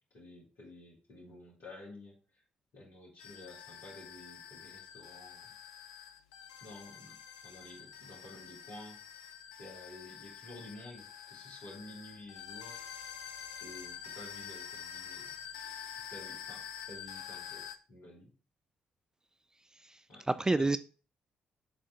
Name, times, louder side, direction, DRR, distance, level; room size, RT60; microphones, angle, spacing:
voice 1, 0.1-2.4 2.7-5.5 6.6-9.3 9.6-12.8 13.6-15.3 16.1-18.3 20.1-20.3 20.6-20.8, left 1 dB, 55° left, 2.3 m, -51 dB
sound 1, 3.2-17.8, left 8 dB, 70° left, 0.4 m, -47 dB
voice 2, 19.8-20.8, right 2 dB, 15° right, 0.3 m, -30 dB
8.2 x 3.7 x 3.7 m
figure-of-eight pair, 40°, 4 cm